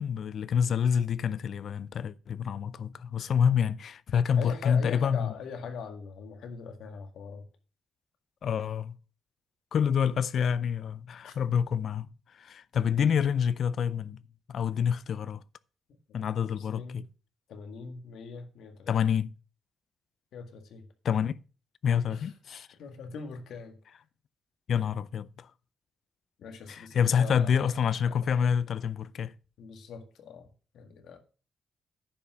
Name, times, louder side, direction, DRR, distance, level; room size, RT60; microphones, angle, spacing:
voice 1, 0.0-5.3 8.4-9.0 9.7-12.1 12.3-14.2 14.5-15.4 16.1-17.0 18.9-19.3 21.0-21.4 21.8-22.7 24.7-25.5 26.7-29.3, left 7 dB, 55° left, 0.5 m, -27 dB
voice 2, 4.4-7.5 11.2-11.4 16.4-17.1 17.5-18.9 20.3-20.9 22.1-22.3 22.8-24.0 26.4-27.7 28.1-28.7 29.6-30.5 30.7-31.2, left 5 dB, 80° left, 1.8 m, -42 dB
9.9 x 6.0 x 5.7 m
cardioid pair, 130°, 0 cm